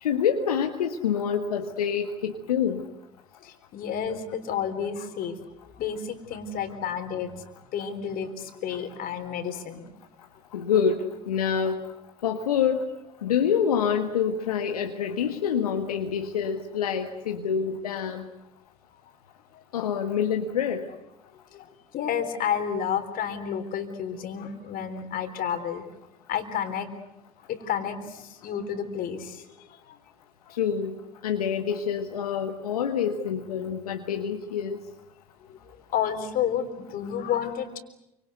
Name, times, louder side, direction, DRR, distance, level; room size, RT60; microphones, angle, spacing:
voice 1, 0.0-2.8 10.5-11.8 12.2-12.9 13.2-18.2 19.7-20.8 30.6-30.9 31.2-34.8, left 7 dB, 80° left, 5 dB, 1.6 m, -26 dB
voice 2, 3.4-7.4 7.7-9.9 19.5-19.6 21.5-25.9 26.3-26.9 27.5-30.0 30.5-30.6 35.4-37.8, left 8 dB, 50° left, 9 dB, 3.9 m, -31 dB
28.0 x 25.5 x 8.1 m, 0.90 s
figure-of-eight pair, 65°, 19 cm